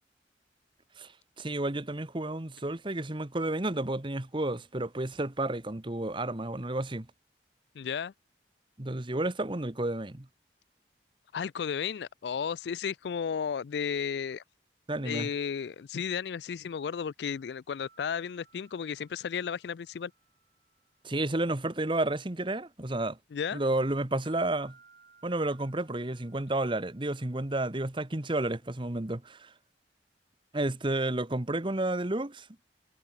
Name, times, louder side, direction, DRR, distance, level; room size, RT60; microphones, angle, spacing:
voice 1, 1.4-7.1 8.8-10.3 14.9-15.3 21.0-23.2 23.5-24.8 25.2-29.5 30.5-32.5, right 2 dB, 30° right, 1.2 m, -31 dB
voice 2, 7.8-8.1 11.3-14.4 15.0-20.1 23.3-23.6, left 7 dB, 70° left, 0.4 m, -33 dB
sound 1, 17.8-23.0 23.2-28.6, right 5 dB, 55° right, 6.1 m, -62 dB
head